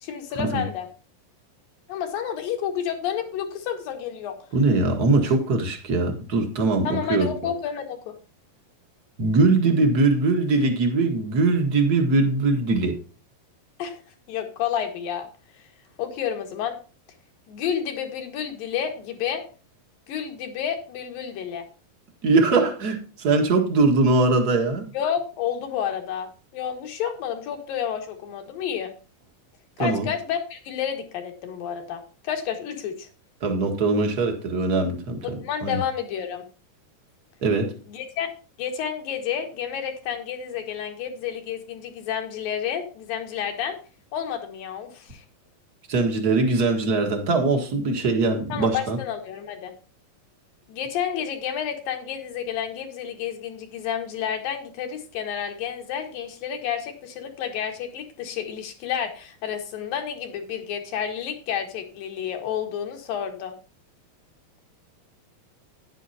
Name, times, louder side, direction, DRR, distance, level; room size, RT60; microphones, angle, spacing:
voice 1, 0.0-0.9 1.9-4.4 6.9-8.1 13.8-14.0 14.3-15.3 16.0-16.8 17.5-19.4 20.1-21.7 24.9-28.9 29.8-33.1 35.4-36.4 37.9-38.3 38.6-43.8 44.1-45.3 48.5-49.7 50.7-63.6, left 8 dB, 75° left, 3.4 m, -30 dB
voice 2, 4.5-7.3 9.2-13.0 22.2-24.9 29.8-30.1 33.4-35.3 35.6-35.8 37.4-37.7 45.9-49.0, right 3 dB, 40° right, 1.4 m, -21 dB
11.0 x 10.0 x 2.8 m
omnidirectional pair, 4.1 m